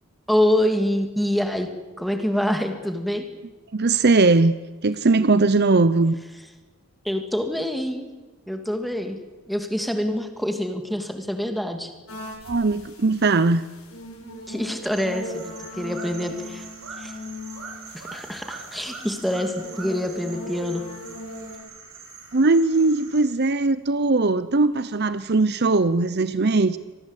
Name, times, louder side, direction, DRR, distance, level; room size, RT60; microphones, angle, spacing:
voice 1, 0.3-1.7 2.0-3.3 7.0-8.1 8.5-9.2 9.5-11.9 14.5-16.6 17.0-17.1 18.1-20.8, left 1 dB, ahead, 5 dB, 2.5 m, -25 dB
voice 2, 3.7-4.5 4.8-6.2 12.4-13.6 22.3-26.8, right 3 dB, 50° right, 14 dB, 0.8 m, -19 dB
sound 1, 12.1-21.6, left 1 dB, 85° left, 7.9 m, -39 dB
sound 2, 14.9-23.2, right 5 dB, 80° right, 7.2 m, -42 dB
25.5 x 19.5 x 8.3 m, 1.2 s
head